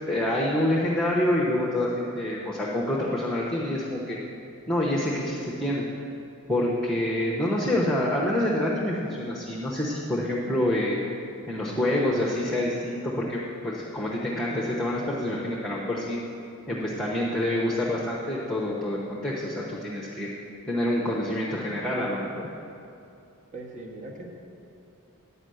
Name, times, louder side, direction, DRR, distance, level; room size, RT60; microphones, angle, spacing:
voice 1, 0.1-4.2 4.7-5.8 6.5-11.0 11.5-16.2 16.7-20.3 20.7-22.5, left 1 dB, 5° left, -5 dB, 0.8 m, -27 dB
voice 2, 23.5-24.3, right 2 dB, 35° right, -1 dB, 1.3 m, -39 dB
9.8 x 5.4 x 7.7 m, 2.7 s
head